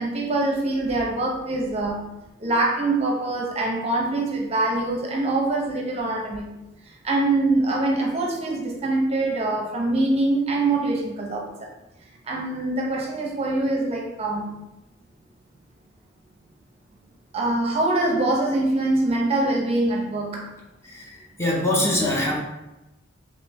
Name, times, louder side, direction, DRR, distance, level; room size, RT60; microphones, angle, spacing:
voice 1, 0.0-2.1 2.4-6.6 7.0-11.5 12.3-14.6 17.3-20.6, right 2 dB, 35° right, -1 dB, 0.6 m, -24 dB
voice 2, 21.4-22.4, left 1 dB, 15° left, -3 dB, 0.6 m, -23 dB
3.2 x 3.1 x 3.4 m, 0.98 s
head